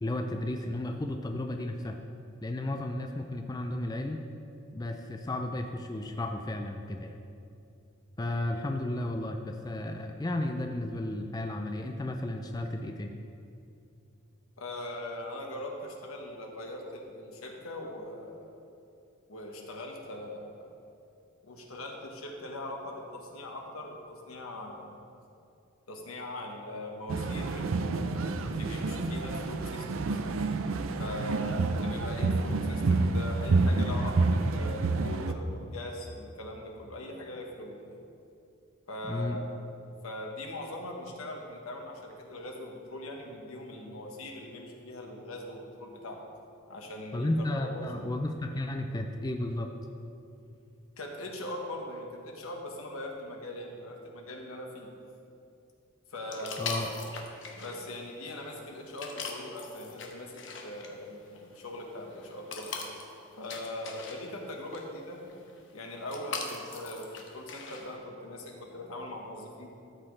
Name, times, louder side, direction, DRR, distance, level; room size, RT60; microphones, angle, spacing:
voice 1, 0.0-2.0 2.4-4.2 4.7-7.2 8.2-13.1 33.9-34.1 39.1-39.4 47.1-49.7 56.6-56.9, left 1 dB, 20° left, 4 dB, 0.4 m, -33 dB
voice 2, 14.6-18.5 19.3-20.7 21.4-24.9 25.9-30.2 31.0-37.9 38.9-39.6 40.0-46.3 46.7-47.9 51.0-54.9 56.1-56.9 57.5-62.7 63.4-65.2 65.7-67.1 67.3-69.7, left 1 dB, 90° left, 1 dB, 1.4 m, -41 dB
sound 1, 27.1-35.3, right 3 dB, 70° right, 0.5 m, -28 dB
sound 2, 56.3-67.9, left 4 dB, 60° left, 1.0 m, -42 dB
13.0 x 7.7 x 3.3 m, 2.6 s
head